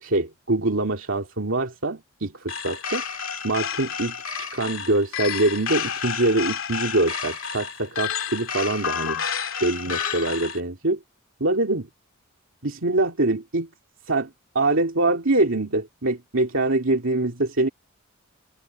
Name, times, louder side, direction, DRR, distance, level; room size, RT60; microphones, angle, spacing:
voice 1, 0.0-3.0 3.4-9.2 9.6-11.0 11.4-11.9 12.6-13.7 14.1-14.3 14.5-17.7, right 2 dB, 65° right, 2.6 m, -24 dB
sound 1, 2.5-10.6, left 7 dB, 75° left, 2.4 m, -30 dB
head